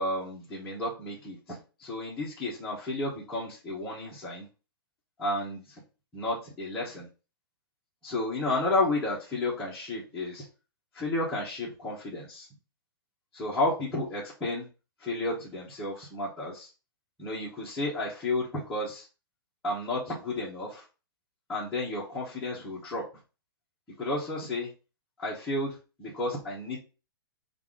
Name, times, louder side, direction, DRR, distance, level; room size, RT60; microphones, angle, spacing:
voice 1, 0.0-4.5 5.2-5.8 6.1-7.1 8.0-10.5 10.9-12.5 13.3-14.7 15.0-16.7 17.2-19.1 19.6-20.8 21.5-23.0 24.0-24.7 25.2-26.8, left 2 dB, 5° left, -10 dB, 0.9 m, -32 dB
5.5 x 2.5 x 3.7 m, 0.32 s
hypercardioid pair, 175°, 13 cm